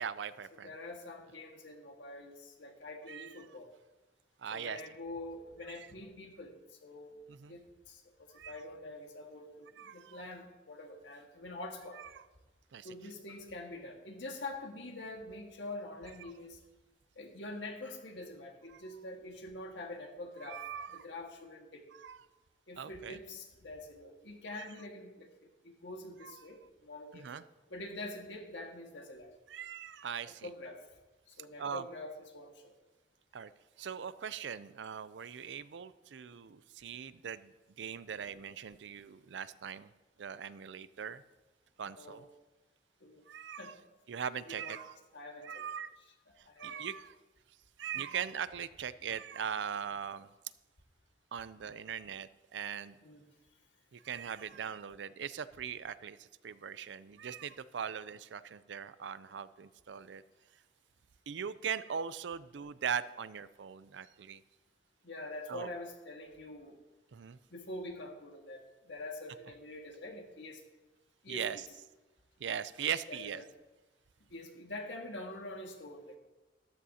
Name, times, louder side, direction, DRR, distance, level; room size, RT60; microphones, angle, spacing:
voice 1, 0.0-0.7 3.1-3.3 4.4-4.8 5.7-5.9 7.3-7.6 8.3-8.5 9.8-10.2 11.9-12.2 12.7-12.9 16.2-16.3 18.7-18.8 20.5-21.0 21.9-22.2 22.8-23.2 24.6-24.7 26.2-26.3 27.2-27.4 29.5-30.5 31.6-31.8 33.3-33.5 33.8-37.5 37.8-39.9 40.2-41.2 41.8-42.3 43.3-43.7 44.1-44.9 45.4-45.9 46.4-47.2 47.8-50.3 51.3-53.0 53.9-60.2 61.3-64.4 65.5-65.7 67.1-67.4 71.3-71.7 72.4-73.4, right 7 dB, 75° right, 15 dB, 0.5 m, -40 dB
voice 2, 0.5-3.7 4.5-7.2 7.5-12.0 12.8-16.6 17.1-21.9 22.7-27.3 27.7-29.3 30.3-30.8 31.3-32.7 41.8-42.3 43.0-43.2 43.6-43.7 44.5-44.8 45.1-45.7 46.3-46.9 47.9-48.1 53.0-53.2 65.0-66.8 67.5-70.6 71.2-71.6 73.1-73.5 74.3-76.2, left 2 dB, 85° left, 3 dB, 1.7 m, -45 dB
13.5 x 13.0 x 2.8 m, 1.2 s
head